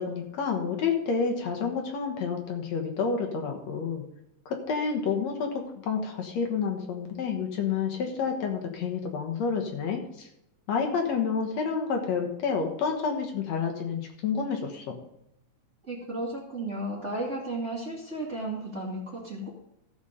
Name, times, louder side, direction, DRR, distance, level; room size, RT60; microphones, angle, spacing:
voice 1, 0.0-4.0 4.5-10.3 10.7-15.0, left 5 dB, 65° left, 2 dB, 2.5 m, -29 dB
voice 2, 15.8-19.5, right 1 dB, 25° right, -3 dB, 1.9 m, -34 dB
14.0 x 7.2 x 5.1 m, 0.82 s
omnidirectional pair, 3.3 m